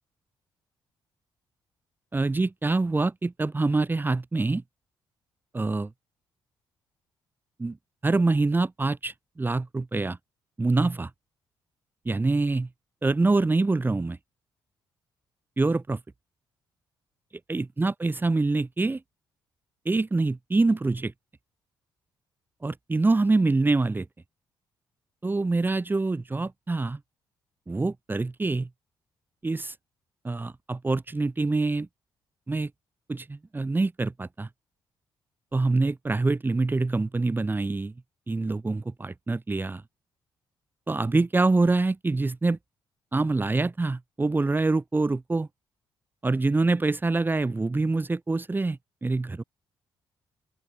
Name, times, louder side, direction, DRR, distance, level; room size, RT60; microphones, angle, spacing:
voice 1, 2.1-4.6 5.5-5.9 7.6-7.8 8.0-10.2 10.6-11.1 12.1-12.7 13.0-14.2 15.6-16.0 17.5-19.0 19.9-21.1 22.6-24.1 25.2-27.0 27.7-28.7 29.4-29.8 30.2-31.9 32.5-32.7 33.1-34.5 35.5-37.9 38.3-39.8 40.9-42.6 43.1-45.5 46.2-49.4, right 3 dB, 20° right, 2.3 m, -25 dB
open air
cardioid pair, 75°, 9 cm